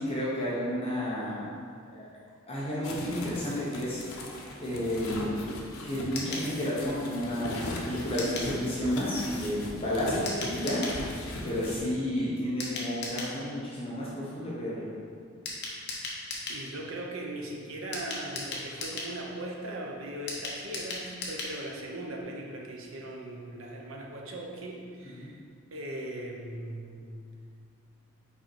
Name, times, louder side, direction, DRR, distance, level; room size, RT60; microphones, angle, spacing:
voice 1, 0.0-1.4 1.9-2.0 2.5-4.0 4.6-14.9 25.2-25.3, equal, 25° left, -8 dB, 1.0 m, -31 dB
sound 1, 2.8-11.8, left 1 dB, 80° left, 0.8 m, -39 dB
sound 2, 6.1-6.5 8.2-8.5 10.3-11.0 12.6-13.3 15.5-16.6 17.9-19.1 20.3-21.6 21.9-22.0 22.2-22.3, left 3 dB, 50° left, 1.0 m, -36 dB
voice 2, 16.5-25.4 25.7-27.1, right 1 dB, 70° right, 0 dB, 0.8 m, -39 dB
5.4 x 4.3 x 4.5 m, 2.2 s
head